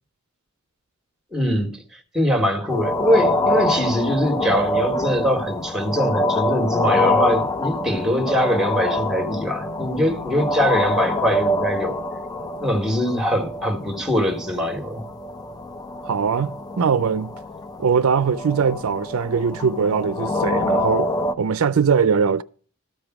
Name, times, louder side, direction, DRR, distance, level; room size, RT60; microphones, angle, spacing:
voice 1, 1.3-1.7 2.1-12.0 12.6-15.0, equal, 5° right, 1.6 m, -22 dB
sound 1, 2.7-21.3, left 1 dB, 20° left, 0.6 m, -25 dB
voice 2, 16.1-17.3 17.8-21.1 21.4-22.4, right 6 dB, 75° right, 0.4 m, -21 dB
13.5 x 5.2 x 6.1 m
head